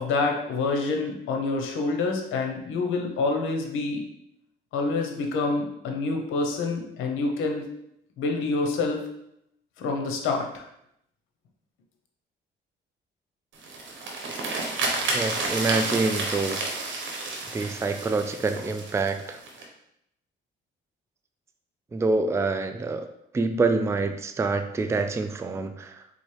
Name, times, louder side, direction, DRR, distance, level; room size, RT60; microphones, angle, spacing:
voice 1, 0.0-4.0 4.7-7.6 8.2-9.0 9.8-10.6, left 3 dB, 85° left, 3 dB, 0.8 m, -27 dB
sound 1, 13.5-19.6, right 2 dB, 75° right, 1.1 m, -31 dB
voice 2, 15.1-16.6 17.5-19.4 21.9-23.1 23.3-26.0, right 3 dB, 15° right, 8 dB, 0.3 m, -26 dB
4.1 x 3.5 x 3.2 m, 0.77 s
cardioid pair, 90°, 20 cm